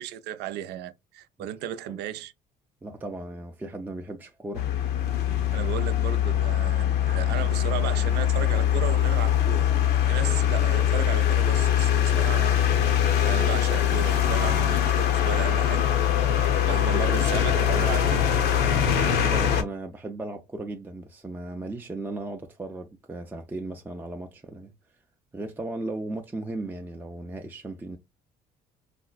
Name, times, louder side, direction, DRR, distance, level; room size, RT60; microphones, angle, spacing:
voice 1, 0.0-2.3 5.5-12.7 13.2-15.9 16.4-18.3, right 11 dB, 80° right, 0.5 m, -35 dB
voice 2, 2.8-4.7 16.6-17.2 18.7-24.7 25.3-28.0, right 2 dB, 10° right, 0.4 m, -36 dB
sound 1, 4.5-19.6, left 10 dB, 75° left, 0.7 m, -22 dB
4.2 x 2.1 x 2.3 m
cardioid pair, 110°, 17 cm